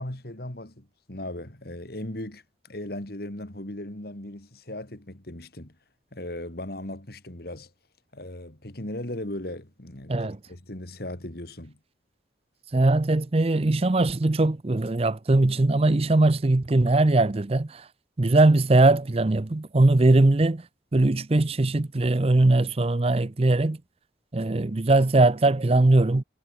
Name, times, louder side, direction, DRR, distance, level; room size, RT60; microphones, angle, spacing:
voice 1, 0.0-5.7 6.1-7.7 8.1-11.8, left 1 dB, 60° left, 2.9 m, -37 dB
voice 2, 10.1-10.4 12.7-17.9 18.2-20.7 20.9-23.8 24.3-26.2, right 2 dB, 35° right, 0.6 m, -20 dB
head